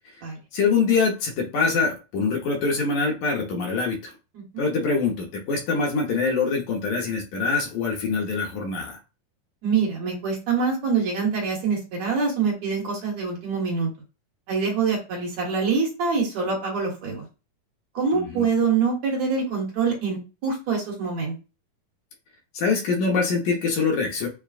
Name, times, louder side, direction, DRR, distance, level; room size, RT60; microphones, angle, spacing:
voice 1, 0.5-4.1 4.6-9.0 18.1-18.5 22.5-24.3, left 4 dB, 70° left, 0 dB, 2.3 m, -24 dB
voice 2, 9.6-13.9 14.5-17.3 17.9-21.4, right 5 dB, 60° right, -2 dB, 2.4 m, -25 dB
6.8 x 2.3 x 2.4 m, 0.30 s
omnidirectional pair, 3.7 m